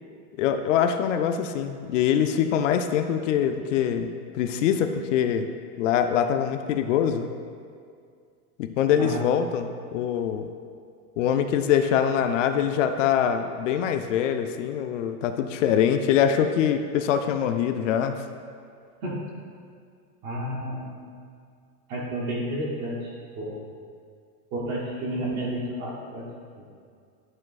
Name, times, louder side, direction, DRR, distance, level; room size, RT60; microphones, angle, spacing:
voice 1, 0.4-5.5 5.8-7.3 8.6-10.5 11.2-18.2, left 8 dB, 60° left, 8 dB, 0.5 m, -24 dB
voice 2, 20.2-21.0 21.9-23.6 24.5-26.2 26.6-26.8, right 1 dB, 20° right, -2 dB, 0.5 m, -31 dB
11.0 x 6.3 x 2.4 m, 2.2 s
supercardioid pair, 180°, 44 cm